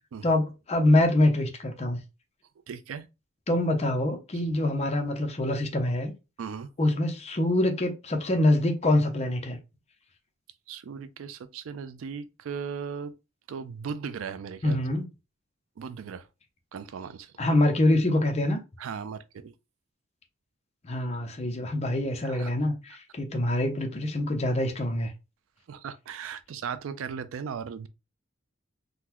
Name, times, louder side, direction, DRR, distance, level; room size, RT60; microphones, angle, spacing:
voice 1, 0.2-2.0 3.5-6.1 6.8-9.6 14.6-15.0 17.4-18.6 20.8-25.1, left 1 dB, 35° left, 0.6 m, -25 dB
voice 2, 2.7-3.1 6.4-6.7 10.7-13.1 13.5-14.8 15.8-16.3 16.7-17.3 18.8-19.5 22.2-22.5 25.7-27.9, right 6 dB, 85° right, 0.4 m, -37 dB
3.8 x 2.1 x 2.9 m
head